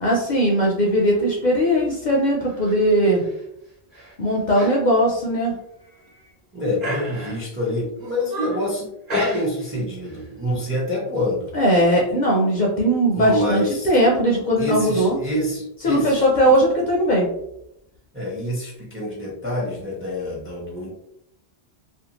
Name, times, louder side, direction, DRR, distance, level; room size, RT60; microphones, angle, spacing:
voice 1, 0.0-3.2 4.2-5.5 11.5-15.2 15.8-17.3, equal, 55° left, -2 dB, 0.6 m, -19 dB
sound 1, 2.4-2.8 3.2-3.4 3.9-4.1 4.5-4.8 5.1-5.2 5.8-6.3 6.8-7.6 8.0-8.7 9.1-9.8 10.0-10.3, equal, 40° right, 1.1 m, -32 dB
voice 2, 6.5-11.5 13.1-13.9 14.6-16.3 18.1-20.9, left 1 dB, 15° right, -4 dB, 0.5 m, -26 dB
2.6 x 2.2 x 2.8 m, 0.81 s
omnidirectional pair, 1.1 m